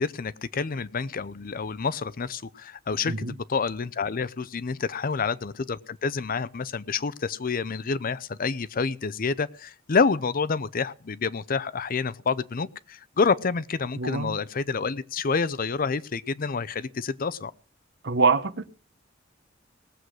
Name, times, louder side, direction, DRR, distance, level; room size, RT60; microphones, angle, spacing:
voice 1, 0.0-3.1 3.5-17.5, left 5 dB, 45° left, 18 dB, 0.6 m, -28 dB
voice 2, 14.0-14.4 18.0-18.7, right 4 dB, 60° right, 13 dB, 1.0 m, -24 dB
18.5 x 7.8 x 6.5 m, 0.40 s
head